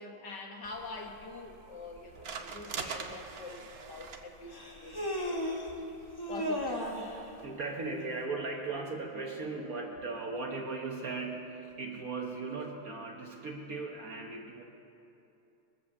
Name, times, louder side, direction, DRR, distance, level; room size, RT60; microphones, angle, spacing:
voice 1, 0.0-6.0 6.3-6.9, left 3 dB, 60° left, 2 dB, 1.8 m, -45 dB
sound 1, 0.6-7.5, right 5 dB, 70° right, 0.5 m, -46 dB
Human voice, 3.1-3.2 4.5-5.7 6.2-7.2, equal, 15° left, 0.9 m, -34 dB
voice 2, 7.4-14.6, right 3 dB, 50° right, 1 dB, 1.2 m, -38 dB
22.0 x 7.8 x 7.0 m, 2.8 s
omnidirectional pair, 2.3 m